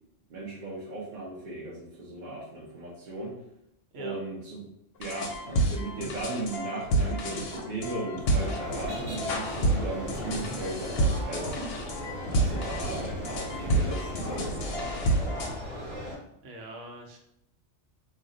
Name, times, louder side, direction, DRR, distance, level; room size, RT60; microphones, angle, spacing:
voice 1, 0.3-3.3 4.0-4.6 5.0-11.5 12.2-15.0, right 2 dB, 50° right, -7 dB, 0.7 m, -37 dB
sound 1, 5.0-15.5, right 1 dB, 65° left, 0.7 m, -29 dB
sound 2, 8.3-16.2, left 1 dB, 35° right, 1.1 m, -37 dB
voice 2, 16.4-17.2, right 1 dB, 80° right, 1 dB, 1.0 m, -43 dB
2.5 x 2.1 x 3.7 m, 0.79 s
omnidirectional pair, 1.3 m